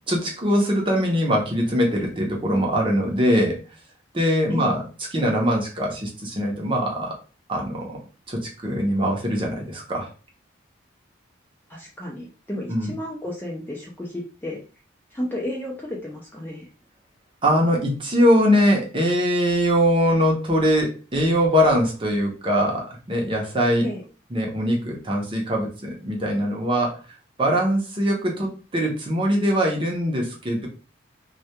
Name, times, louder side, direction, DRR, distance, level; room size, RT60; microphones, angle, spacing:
voice 1, 0.1-3.6 4.1-4.8 5.1-7.2 7.5-8.0 8.3-10.1 12.7-12.9 17.4-23.8 24.3-27.0 27.4-30.7, equal, 25° right, -1 dB, 0.6 m, -22 dB
voice 2, 11.7-14.6 15.1-16.6 23.8-24.0, left 1 dB, 10° left, -2 dB, 0.4 m, -32 dB
2.3 x 2.2 x 2.8 m, 0.35 s
head